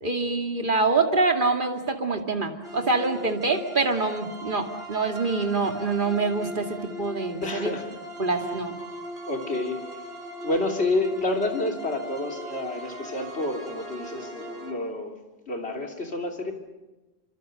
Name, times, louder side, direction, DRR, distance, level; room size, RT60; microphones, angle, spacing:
voice 1, 0.0-7.7 8.2-8.7, right 3 dB, 50° right, 4 dB, 2.5 m, -25 dB
sound 1, 2.6-14.7, right 1 dB, 85° right, 4.3 m, -39 dB
voice 2, 7.4-7.8 9.3-10.0 10.4-15.1 15.5-16.5, left 2 dB, 90° left, 3 dB, 3.3 m, -29 dB
28.0 x 25.0 x 6.6 m, 1.1 s
omnidirectional pair, 1.1 m